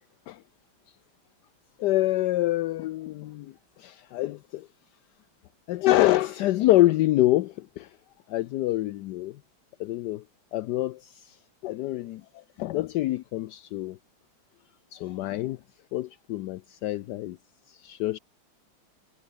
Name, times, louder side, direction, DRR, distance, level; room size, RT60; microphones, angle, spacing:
voice 1, 1.8-3.5 3.8-4.7 5.7-7.9 8.3-9.4 9.8-10.2 10.5-11.4 11.6-12.2 12.6-14.0 14.9-15.6 15.9-17.4 17.7-18.2, left 16 dB, 75° left, 1.0 m, -26 dB
omnidirectional pair, 2.3 m